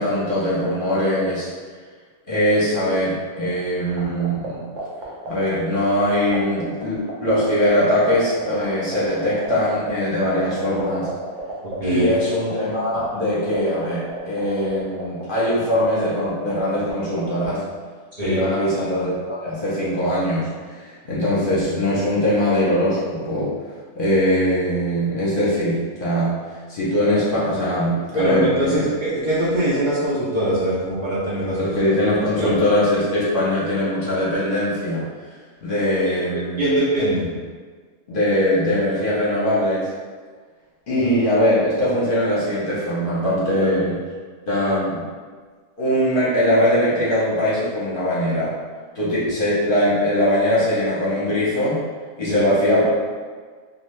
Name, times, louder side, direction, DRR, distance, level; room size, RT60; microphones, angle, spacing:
voice 1, 0.0-1.5 2.3-4.6 5.3-11.1 11.8-17.6 18.2-23.5 23.9-26.4 26.7-28.8 31.6-35.1 35.6-36.6 38.1-39.9 40.9-44.0 44.5-45.1 45.8-48.5 48.9-51.8 52.2-53.0, equal, 50° left, -9 dB, 0.9 m, -21 dB
sound 1, 3.9-17.3, right 3 dB, 75° right, 1.0 m, -33 dB
voice 2, 11.8-12.1 18.2-18.4 28.1-31.8 32.4-32.5 36.6-37.3 41.0-41.1 43.6-43.7 52.3-52.5, right 1 dB, 50° right, -9 dB, 0.7 m, -22 dB
2.6 x 2.5 x 3.1 m, 1.5 s
omnidirectional pair, 1.3 m